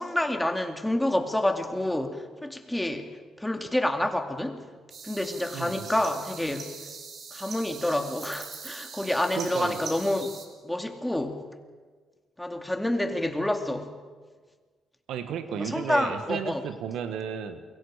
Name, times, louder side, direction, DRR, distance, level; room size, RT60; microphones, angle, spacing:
voice 1, 0.0-3.1 3.4-4.6 5.0-6.7 7.3-10.3 10.6-11.4 12.4-13.9 15.5-16.6, left 1 dB, 5° left, 5 dB, 2.4 m, -28 dB
sound 1, 4.9-10.5, right 5 dB, 60° right, 3.8 m, -42 dB
voice 2, 5.5-5.9 9.3-9.8 15.1-17.6, right 8 dB, 85° right, 9 dB, 1.5 m, -33 dB
28.5 x 23.0 x 5.0 m, 1.5 s
cardioid pair, 90°, 0 cm